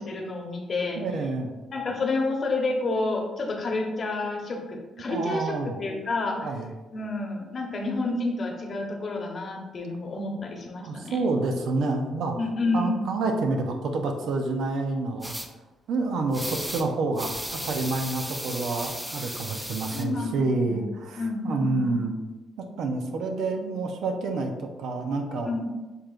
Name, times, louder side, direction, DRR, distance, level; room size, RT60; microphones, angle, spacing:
voice 1, 0.0-1.0 1.7-6.4 6.9-11.2 12.4-12.9 19.9-20.3 20.6-20.8 21.2-21.9 25.5-25.7, left 2 dB, 45° left, 1 dB, 1.0 m, -29 dB
voice 2, 1.0-1.5 5.1-5.8 6.4-6.7 10.8-12.4 12.7-15.3 15.9-22.2 22.6-25.5, right 3 dB, 75° right, 4 dB, 0.6 m, -28 dB
sound 1, 15.2-15.5 16.3-16.9 17.2-20.0, equal, 5° right, 0.5 m, -35 dB
6.8 x 3.2 x 2.4 m, 1.2 s
cardioid pair, 90°, 0 cm